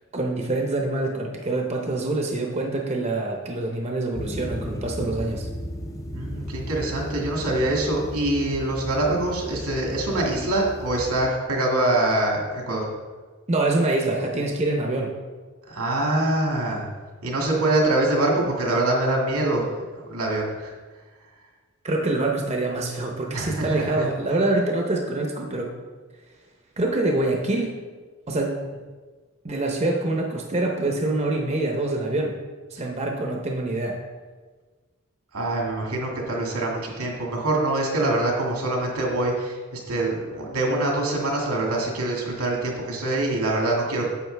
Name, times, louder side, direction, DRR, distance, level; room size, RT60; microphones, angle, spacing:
voice 1, 0.1-5.5 13.5-15.1 21.8-25.7 26.8-27.8 28.3-28.6 29.4-32.3 32.7-34.0, right 2 dB, 30° right, 1 dB, 0.7 m, -25 dB
sound 1, 4.1-11.2, equal, 15° left, 0.6 m, -35 dB
voice 2, 6.1-12.9 15.7-16.9 17.2-19.7 19.9-20.7 23.3-24.1 35.3-44.1, right 2 dB, 85° right, -1 dB, 2.0 m, -24 dB
9.4 x 7.2 x 3.3 m, 1.4 s
head